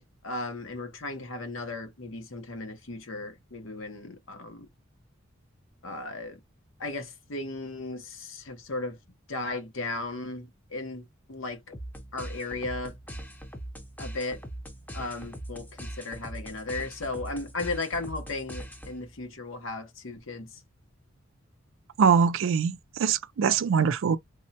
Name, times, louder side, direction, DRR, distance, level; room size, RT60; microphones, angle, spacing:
voice 1, 0.0-4.7 5.8-6.4 6.8-9.0 9.3-11.7 12.1-12.9 14.0-14.4 14.9-20.5, left 2 dB, 75° left, 0.9 m, -36 dB
sound 1, 11.7-19.2, right 1 dB, 10° left, 0.6 m, -41 dB
voice 2, 22.0-24.2, right 6 dB, 75° right, 0.4 m, -23 dB
3.5 x 2.1 x 2.7 m
head